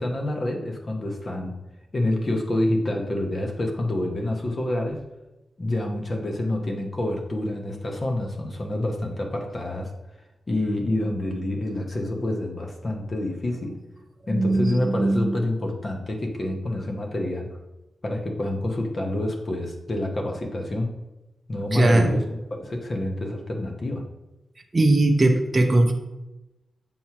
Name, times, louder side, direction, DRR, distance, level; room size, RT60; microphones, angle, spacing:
voice 1, 0.0-1.5 1.9-5.0 5.6-9.9 10.5-13.8 14.3-17.6 18.0-20.9 21.5-22.2 22.5-24.0, left 1 dB, 35° left, 2 dB, 0.8 m, -27 dB
voice 2, 14.3-15.4 21.7-22.2 24.7-25.9, right 2 dB, 25° right, 2 dB, 0.5 m, -20 dB
7.2 x 3.1 x 5.6 m, 1.0 s
wide cardioid pair, 145°, 0 cm